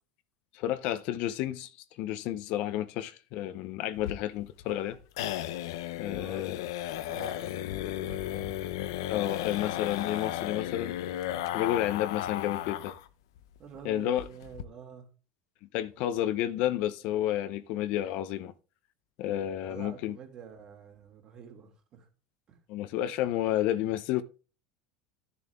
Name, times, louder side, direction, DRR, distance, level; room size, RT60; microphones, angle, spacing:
voice 1, 0.5-1.7 2.0-5.0 6.0-6.7 9.1-11.0 11.5-12.9 13.8-14.2 15.7-18.5 19.2-20.2 22.7-24.2, left 12 dB, 60° left, 0.7 m, -31 dB
sound 1, 4.0-13.1 13.4-13.5 13.8-13.9 14.2-14.6, left 13 dB, 90° left, 0.7 m, -34 dB
voice 2, 6.1-6.5 7.0-7.6 8.0-8.5 13.6-15.0 19.6-22.1 22.5-22.6, right 7 dB, 40° right, 3.0 m, -47 dB
12.5 x 6.9 x 3.6 m
supercardioid pair, 140°, 2 cm